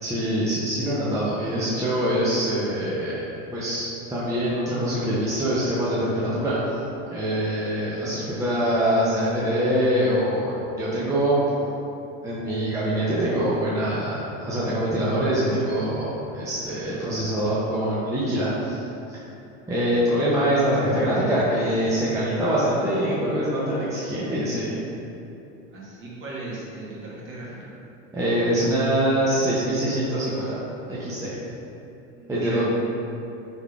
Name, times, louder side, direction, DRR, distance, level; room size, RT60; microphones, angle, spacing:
voice 1, 0.0-3.2 3.5-6.6 7.1-11.7 12.2-18.8 19.1-19.2 19.7-24.8 28.1-30.6 30.9-31.4 32.3-32.6, right 1 dB, 10° right, -9 dB, 0.5 m, -24 dB
voice 2, 25.7-27.7 32.1-32.6, right 3 dB, 35° right, -6 dB, 1.1 m, -37 dB
3.5 x 3.5 x 2.3 m, 2.8 s
hypercardioid pair, 100°, 36 cm